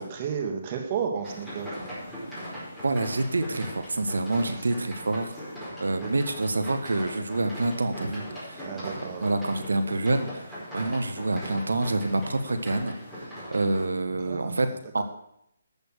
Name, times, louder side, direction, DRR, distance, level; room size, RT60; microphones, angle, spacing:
voice 1, 0.0-1.8 5.9-6.1 8.6-9.3 14.2-15.0, right 7 dB, 35° right, 2 dB, 2.4 m, -33 dB
sound 1, 1.2-13.8, equal, 5° left, 5.0 m, -39 dB
voice 2, 2.8-5.4 5.8-8.6 9.2-10.5 10.7-15.0, right 2 dB, 80° right, 9 dB, 1.5 m, -27 dB
12.5 x 7.0 x 6.5 m, 0.76 s
figure-of-eight pair, 150°, 0 cm